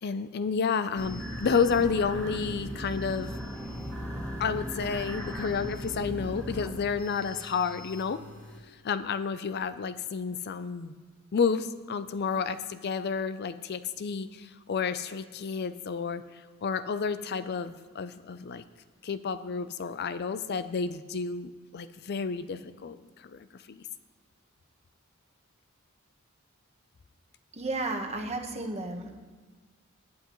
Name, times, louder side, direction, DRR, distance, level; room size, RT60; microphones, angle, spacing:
voice 1, 0.0-3.3 4.4-8.2 8.8-10.9 11.3-18.6 19.0-23.8, left 5 dB, 50° left, 12 dB, 0.4 m, -31 dB
sound 1, 1.0-8.6, equal, 10° left, 2.3 m, -38 dB
voice 2, 27.5-29.1, right 2 dB, 30° right, 3 dB, 1.2 m, -33 dB
19.0 x 9.8 x 3.1 m, 1.4 s
head